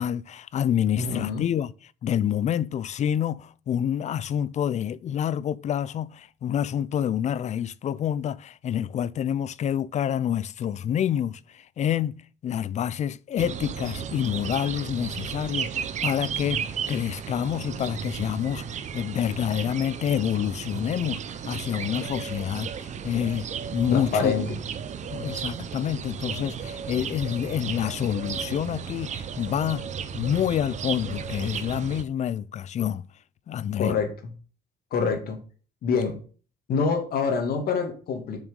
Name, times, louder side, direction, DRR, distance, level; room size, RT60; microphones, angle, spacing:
voice 1, 0.0-1.7 2.0-12.2 12.4-23.5 23.7-24.5 25.1-29.8 30.1-33.1 33.5-34.0, left 9 dB, 45° left, 0.5 m, -28 dB
voice 2, 1.0-1.5 23.9-24.5 33.8-34.1 34.9-35.4 35.8-36.2 36.7-38.4, left 5 dB, 65° left, 2.4 m, -26 dB
sound 1, 13.4-32.0, right 7 dB, 45° right, 0.8 m, -34 dB
7.2 x 6.5 x 5.3 m
cardioid pair, 110°, 17 cm